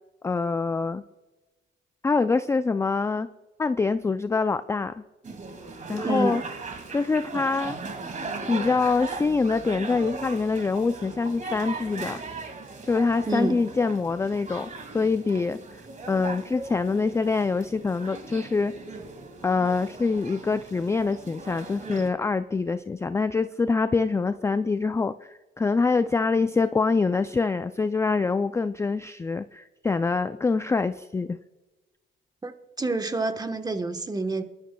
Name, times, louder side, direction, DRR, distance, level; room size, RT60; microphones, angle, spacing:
voice 1, 0.2-1.0 2.0-3.3 3.6-5.0 5.9-6.4 6.9-7.8 8.5-12.2 12.9-14.7 14.9-15.6 16.1-18.7 19.4-31.4, left 4 dB, 15° left, 0.3 m, -25 dB
sound 1, 5.2-22.1, right 3 dB, 40° right, 2.0 m, -38 dB
voice 2, 6.0-6.4 13.3-13.6 32.4-32.5 32.8-34.4, right 2 dB, 20° right, 1.1 m, -27 dB
24.0 x 12.5 x 2.2 m
cardioid pair, 90°, 20 cm